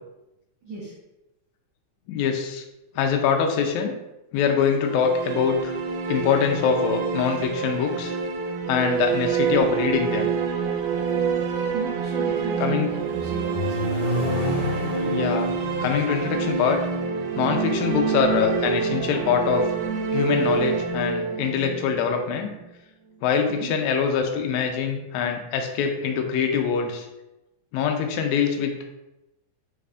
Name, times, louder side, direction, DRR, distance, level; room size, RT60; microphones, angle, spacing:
voice 1, 0.6-0.9 11.7-14.2 17.9-18.1 23.5-23.7, right 3 dB, 65° right, -9 dB, 1.2 m, -36 dB
voice 2, 2.1-2.6 3.0-3.9 4.3-5.7 6.1-8.1 8.7-10.3 12.6-12.9 15.1-15.5 15.8-16.8 17.4-19.6 20.1-22.5 23.2-27.1 27.7-28.7, left 7 dB, 80° left, 3 dB, 1.7 m, -24 dB
sound 1, 4.7-22.6, right 5 dB, 90° right, 2.2 m, -27 dB
Accelerating revving vroom, 12.5-18.5, left 3 dB, 65° left, 2.2 m, -32 dB
4.9 x 2.5 x 3.4 m, 0.93 s
omnidirectional pair, 3.7 m